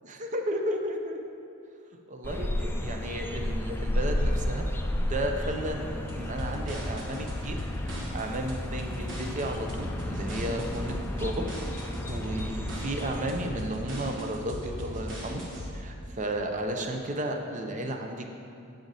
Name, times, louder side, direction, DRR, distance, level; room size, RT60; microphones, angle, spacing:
voice 1, 0.1-1.2 2.1-4.7 5.1-7.6 7.9-10.9 11.2-11.5 11.8-15.4 15.7-18.3, right 1 dB, 35° right, 4 dB, 0.6 m, -33 dB
sound 1, 2.2-13.3, left 1 dB, 10° left, 0.3 m, -33 dB
sound 2, 6.1-15.7, equal, 60° right, 1.2 m, -37 dB
7.6 x 5.0 x 4.0 m, 2.5 s
head